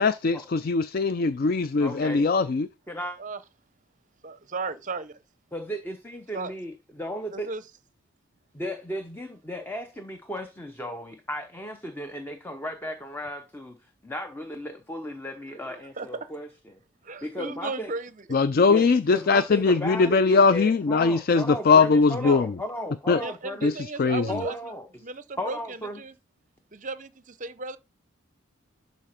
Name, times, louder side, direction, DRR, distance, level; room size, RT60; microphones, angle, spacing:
voice 1, 0.0-2.7 18.3-22.5 23.1-23.2 23.6-24.3, left 4 dB, 45° left, 0.4 m, -21 dB
voice 2, 1.8-2.3 2.9-3.2 5.5-7.5 8.5-16.8 17.2-17.9 18.7-23.7 24.3-24.9 25.4-26.0, equal, 10° left, 0.7 m, -35 dB
voice 3, 4.2-5.2 6.3-6.5 7.3-7.6 16.0-16.3 17.0-18.3 22.2-22.4 23.2-24.7 25.0-26.1 26.7-27.8, right 3 dB, 35° right, 0.7 m, -35 dB
11.5 x 4.0 x 5.8 m
head